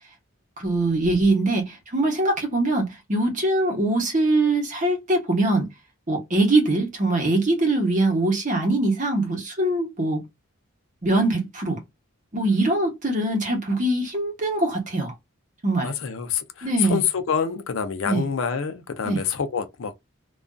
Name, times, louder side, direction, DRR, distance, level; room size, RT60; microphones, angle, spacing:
voice 1, 0.6-5.7 6.1-10.2 11.0-11.8 12.3-15.1 15.6-15.9 16.6-17.0 18.0-18.2 19.0-19.2, right 2 dB, 35° right, 0.9 m, -22 dB
voice 2, 15.8-19.9, left 7 dB, 65° left, 0.5 m, -27 dB
2.5 x 2.3 x 2.2 m
head